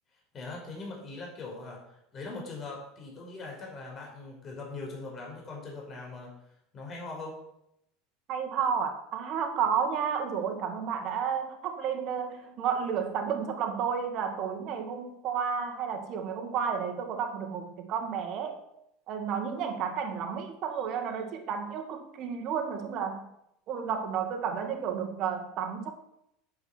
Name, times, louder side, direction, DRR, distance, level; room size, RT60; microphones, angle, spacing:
voice 1, 0.3-6.3 6.7-7.4, left 3 dB, 35° left, -1 dB, 5.3 m, -41 dB
voice 2, 8.3-18.6 19.1-23.3 23.7-25.9, right 7 dB, 50° right, 4 dB, 2.2 m, -31 dB
9.6 x 9.0 x 6.3 m, 0.79 s
hypercardioid pair, 80°, 0 cm